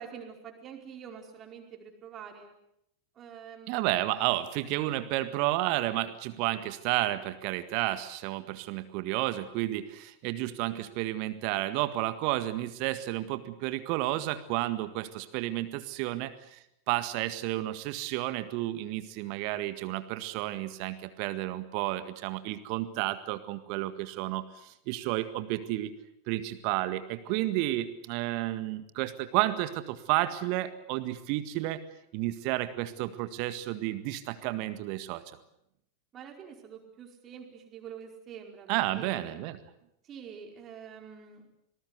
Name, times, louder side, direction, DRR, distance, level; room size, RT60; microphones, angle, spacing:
voice 1, 0.0-2.5 3.1-3.9 14.1-14.4 27.2-27.4 36.1-39.4 40.0-41.5, right 7 dB, 30° right, 2 dB, 4.8 m, -46 dB
voice 2, 3.7-16.6 16.9-25.9 26.3-31.8 32.1-35.2 38.7-39.6, right 16 dB, 45° right, 12 dB, 1.7 m, -31 dB
26.0 x 19.5 x 8.1 m, 0.79 s
figure-of-eight pair, 90°, 0 cm